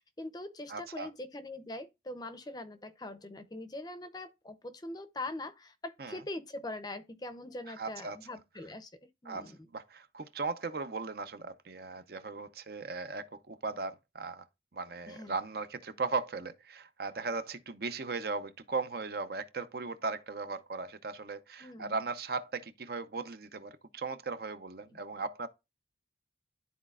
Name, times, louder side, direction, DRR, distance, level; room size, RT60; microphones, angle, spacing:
voice 1, 0.0-9.7 15.1-15.4 21.6-22.0, left 2 dB, 20° left, 0.6 m, -42 dB
voice 2, 0.7-1.1 6.0-6.2 7.7-8.2 9.3-14.4 14.7-25.5, right 4 dB, 55° right, 0.6 m, -37 dB
12.0 x 4.1 x 2.4 m
head